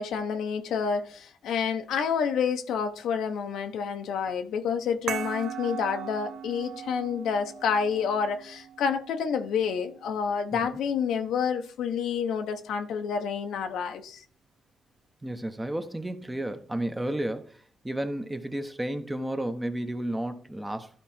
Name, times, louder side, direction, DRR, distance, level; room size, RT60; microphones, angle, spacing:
voice 1, 0.0-14.2, left 6 dB, 80° left, 1.0 m, -29 dB
sound 1, 5.1-10.2, right 9 dB, 70° right, 0.6 m, -39 dB
voice 2, 15.2-20.9, right 1 dB, 10° right, 1.0 m, -32 dB
12.0 x 4.6 x 4.4 m
cardioid pair, 90°, 0 cm